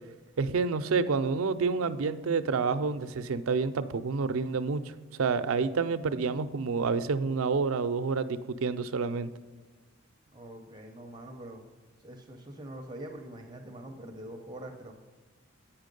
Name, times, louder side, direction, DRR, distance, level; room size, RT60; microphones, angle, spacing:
voice 1, 0.4-4.8 5.2-9.3, right 4 dB, 75° right, 11 dB, 0.4 m, -28 dB
voice 2, 10.3-11.6 12.0-14.9, right 1 dB, 20° right, 3 dB, 0.6 m, -44 dB
8.3 x 5.8 x 5.2 m, 1.3 s
head